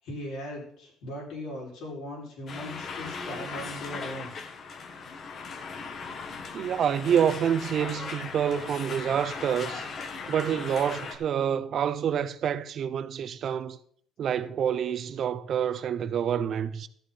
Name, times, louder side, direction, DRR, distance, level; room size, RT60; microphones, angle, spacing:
voice 1, 0.0-4.3, left 1 dB, 75° left, 6.1 m, -38 dB
sound 1, 2.5-11.2, left 5 dB, 50° left, 1.6 m, -38 dB
voice 2, 6.5-9.9 10.3-13.8 14.2-16.9, right 8 dB, 55° right, 0.7 m, -27 dB
13.0 x 8.6 x 4.3 m
cardioid pair, 100°, 0 cm